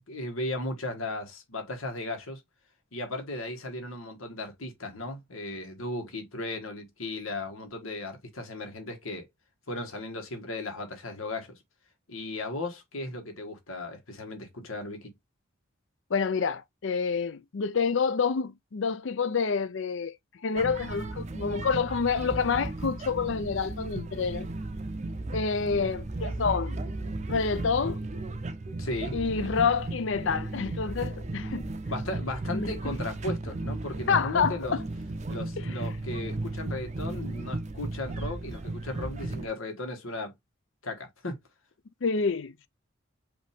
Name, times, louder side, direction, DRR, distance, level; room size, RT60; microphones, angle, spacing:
voice 1, 0.1-2.4 2.9-9.3 9.7-11.5 12.1-15.1 28.8-29.1 31.9-34.8 35.3-40.3 40.8-41.4, left 2 dB, 90° left, 1.6 m, -36 dB
voice 2, 16.1-20.1 20.4-24.5 25.3-26.8 27.3-28.0 29.1-31.7 32.5-32.7 34.1-34.6 42.0-42.7, left 5 dB, 65° left, 0.5 m, -28 dB
sound 1, 20.6-39.5, right 2 dB, 35° right, 0.5 m, -35 dB
5.2 x 2.8 x 3.4 m
head